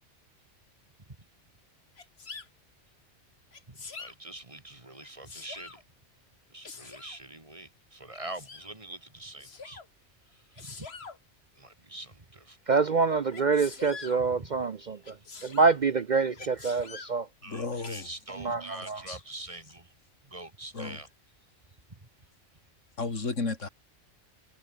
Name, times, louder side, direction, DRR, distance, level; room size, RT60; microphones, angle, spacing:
Sneeze, 2.0-2.5 3.5-4.1 5.0-5.8 6.6-7.2 8.1-8.7 9.4-9.9 10.5-11.2 13.3-14.2 15.0-15.8 16.3-17.1 17.8-18.1, left 4 dB, 55° left, 2.1 m, -44 dB
voice 1, 3.7-5.8 6.5-9.8 10.3-10.9 11.6-12.6 13.1-13.2 14.4-14.9 16.3-16.7 17.4-19.9 20.2-21.1 21.9-22.0, right 2 dB, 25° right, 2.1 m, -45 dB
voice 2, 12.7-15.2 15.4-17.3 18.4-19.0, right 4 dB, 45° right, 0.7 m, -26 dB
voice 3, 17.5-18.1 19.1-19.2 20.7-21.0 23.0-23.7, left 3 dB, 85° left, 3.2 m, -33 dB
omnidirectional pair, 1.3 m